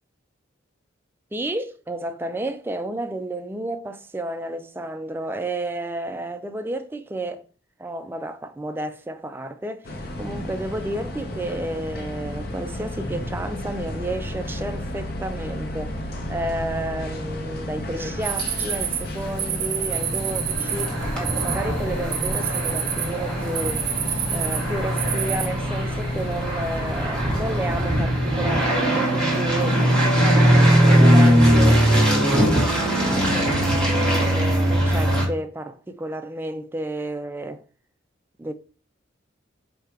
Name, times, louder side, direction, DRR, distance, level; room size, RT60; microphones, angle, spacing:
voice 1, 1.3-7.5 7.8-16.0 16.3-23.9 24.3-31.8 32.3-37.6 38.4-38.5, right 1 dB, 10° right, 0.3 m, -31 dB
sound 1, 9.8-28.0, left 1 dB, 55° left, 0.7 m, -32 dB
sound 2, 18.2-25.5, right 8 dB, 55° right, 0.6 m, -29 dB
sound 3, 19.9-35.2, equal, 5° left, 1.2 m, -20 dB
4.8 x 2.2 x 4.5 m
head